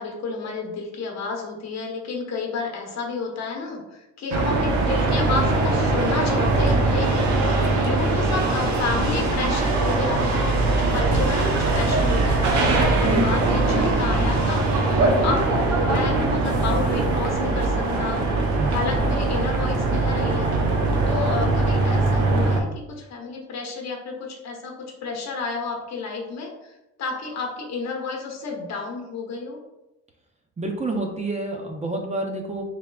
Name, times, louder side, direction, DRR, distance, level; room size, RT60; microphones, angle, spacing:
voice 1, 0.0-14.6 15.0-15.5 15.9-18.2 18.7-20.5 21.1-26.7 27.0-29.6, left 4 dB, 60° left, 1 dB, 0.9 m, -31 dB
sound 1, 4.3-22.6, right 2 dB, 75° right, 0.7 m, -21 dB
voice 2, 30.6-32.6, right 2 dB, 25° right, 2 dB, 0.5 m, -29 dB
3.6 x 3.3 x 2.3 m, 0.96 s
cardioid pair, 90°, 30 cm